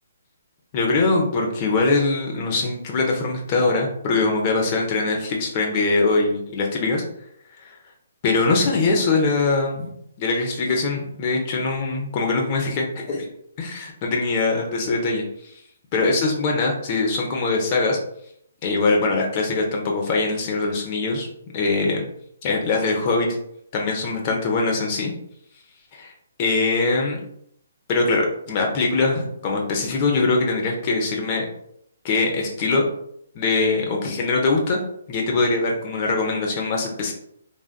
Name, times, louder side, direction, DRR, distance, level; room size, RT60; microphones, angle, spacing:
voice 1, 0.7-7.0 8.2-9.9 10.2-13.3 13.6-15.2 15.9-18.0 18.6-21.3 21.5-22.0 22.4-23.3 23.7-25.1 25.9-26.1 26.4-27.2 27.9-31.5 32.0-32.9 33.3-34.8 35.1-37.1, left 3 dB, 35° left, 1 dB, 0.7 m, -22 dB
3.5 x 2.4 x 2.2 m, 0.71 s
hypercardioid pair, 145°, 0 cm